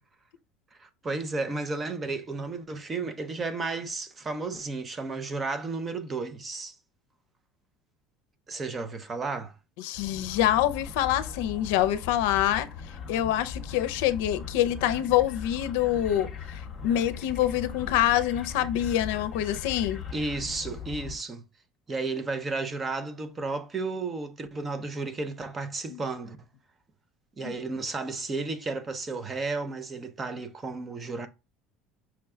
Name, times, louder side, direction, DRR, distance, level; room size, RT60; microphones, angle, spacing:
voice 1, 0.8-6.8 8.5-9.5 20.1-21.4 21.9-26.4 27.4-31.3, right 3 dB, 20° right, 0.5 m, -33 dB
voice 2, 9.8-12.7 13.1-20.0 25.9-26.0 27.4-27.5, left 12 dB, 90° left, 0.5 m, -26 dB
sound 1, 9.9-21.2, left 6 dB, 20° left, 0.9 m, -39 dB
5.8 x 2.2 x 3.5 m
cardioid pair, 160°, 0 cm